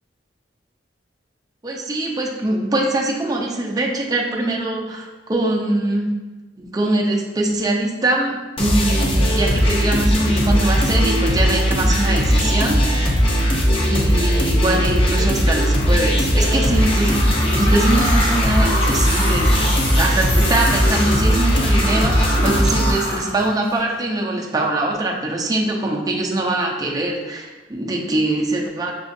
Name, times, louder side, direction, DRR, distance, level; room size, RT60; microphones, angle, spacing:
voice 1, 1.6-6.1 6.6-13.0 13.8-19.7 20.0-28.9, right 2 dB, 20° right, -1 dB, 0.5 m, -22 dB
sound 1, 8.6-22.9, equal, 30° left, 0.5 m, -18 dB
sound 2, 16.2-23.8, left 1 dB, 50° left, 1.1 m, -27 dB
5.9 x 2.4 x 2.6 m, 1.2 s
head